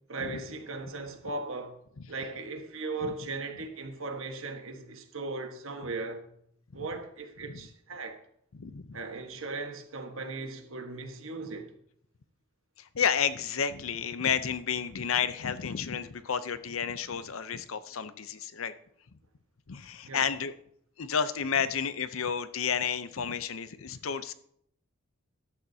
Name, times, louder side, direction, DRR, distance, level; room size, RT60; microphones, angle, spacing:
voice 1, 0.1-1.8 2.1-6.3 6.7-8.2 8.9-11.7 20.0-20.3, right 3 dB, 70° right, 1.4 m, -38 dB
voice 2, 8.5-9.0 12.8-18.7 19.7-20.5 21.0-24.3, left 7 dB, 75° left, 0.7 m, -31 dB
14.0 x 11.0 x 2.8 m
head